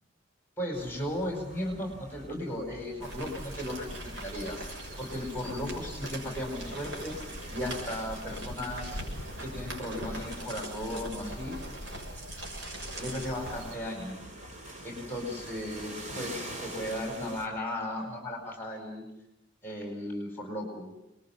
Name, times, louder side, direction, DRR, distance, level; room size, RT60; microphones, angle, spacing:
voice 1, 0.6-4.7 5.0-9.0 9.4-11.6 13.0-14.2 14.8-19.0 19.6-20.9, left 1 dB, 10° left, 3 dB, 4.8 m, -36 dB
sound 1, 0.7-17.5, right 1 dB, 40° right, 4.3 m, -46 dB
sound 2, 3.0-13.7, right 1 dB, 70° right, 6.8 m, -40 dB
Laughter, 10.9-14.5 16.1-19.0, equal, 90° right, 7.8 m, -52 dB
26.5 x 21.0 x 7.4 m, 0.83 s
head